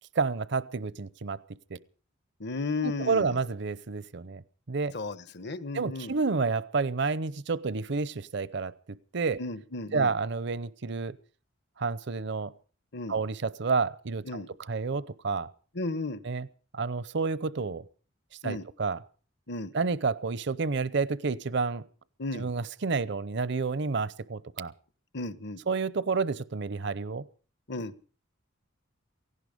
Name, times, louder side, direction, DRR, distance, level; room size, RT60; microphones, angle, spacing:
voice 1, 0.2-1.4 1.7-1.8 2.8-4.4 4.7-4.9 5.7-9.4 9.9-11.1 11.8-12.5 13.1-15.5 16.2-16.5 16.7-17.8 18.4-19.0 19.7-21.8 22.3-24.7 25.7-27.2, right 4 dB, 60° right, 19 dB, 0.7 m, -30 dB
voice 2, 2.4-3.4 4.9-6.1 9.4-10.1 12.9-13.2 14.3-14.5 15.7-16.2 18.4-18.6 19.5-19.7 22.2-22.5 25.1-25.6 27.7-27.9, left 3 dB, 60° left, 15 dB, 1.1 m, -34 dB
17.5 x 16.0 x 5.2 m, 0.40 s
head